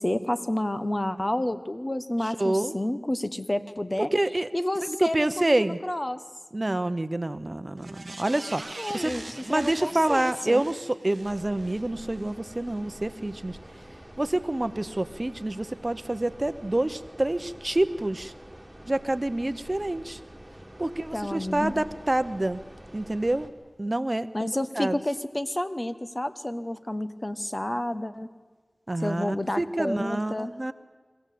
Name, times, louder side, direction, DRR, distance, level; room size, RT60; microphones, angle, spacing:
voice 1, 0.0-4.1 4.5-6.2 8.8-10.6 20.8-21.8 24.3-28.3 29.0-30.5, left 1 dB, 30° left, 11 dB, 1.1 m, -30 dB
voice 2, 2.4-2.7 4.0-4.5 4.8-5.8 6.5-8.6 8.9-9.1 9.5-13.6 14.2-18.3 18.9-20.2 20.8-22.6 22.9-23.5 23.8-24.5 24.8-25.0 28.9-30.7, right 1 dB, 40° right, 12 dB, 0.8 m, -27 dB
sound 1, 7.8-12.3 12.7-12.8, right 2 dB, 70° right, 0.8 m, -43 dB
sound 2, 11.2-23.5, right 1 dB, 15° right, 2.8 m, -47 dB
23.0 x 16.0 x 8.4 m, 1.4 s
wide cardioid pair, 40°, 0 cm